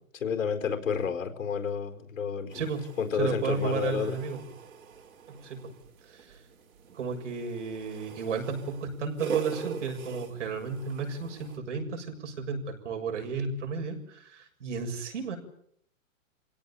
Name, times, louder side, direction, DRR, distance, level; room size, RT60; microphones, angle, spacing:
voice 1, 0.1-2.6 3.0-4.2, left 6 dB, 70° left, 5 dB, 4.4 m, -30 dB
sound 1, 2.5-11.6, right 6 dB, 85° right, 3.8 m, -41 dB
voice 2, 3.1-4.4 5.3-5.6 6.0-6.4 6.9-12.6 12.8-15.4, right 5 dB, 60° right, 3 dB, 7.1 m, -33 dB
26.5 x 17.5 x 8.9 m, 0.69 s
hypercardioid pair, 180°, 40 cm